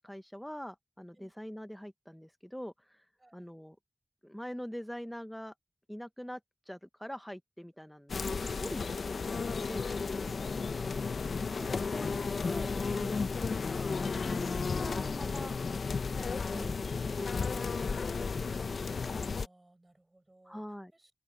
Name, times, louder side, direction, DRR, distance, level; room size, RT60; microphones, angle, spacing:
voice 1, 0.0-3.1 3.3-3.8 4.2-5.5 5.9-6.4 6.7-9.4 9.7-10.4 11.6-13.4 13.7-15.5 16.5-18.8 20.4-20.9, equal, 5° left, 0.6 m, -44 dB
sound 1, 8.1-19.5, left 4 dB, 85° left, 0.6 m, -33 dB
voice 2, 19.1-20.6 20.9-21.1, right 2 dB, 25° right, 5.7 m, -62 dB
open air
wide cardioid pair, 100°, 0 cm